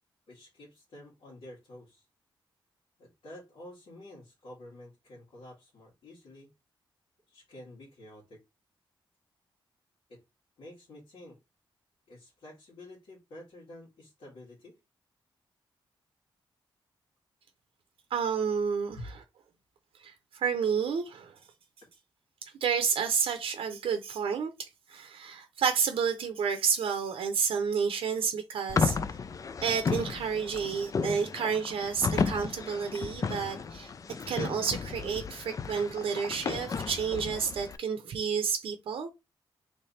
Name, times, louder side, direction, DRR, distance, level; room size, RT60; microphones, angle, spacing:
voice 1, 0.3-2.0 3.0-6.5 7.3-8.4 10.1-10.2 10.6-11.4 12.1-14.8 18.9-19.1, left 1 dB, 85° left, 1.9 m, -49 dB
voice 2, 18.1-19.1 20.0-21.4 22.4-29.0 29.6-33.9 34.3-39.1, right 6 dB, 85° right, 0.6 m, -30 dB
sound 1, 28.7-37.8, left 5 dB, 40° left, 0.4 m, -33 dB
3.3 x 3.2 x 4.1 m
wide cardioid pair, 115°, 9 cm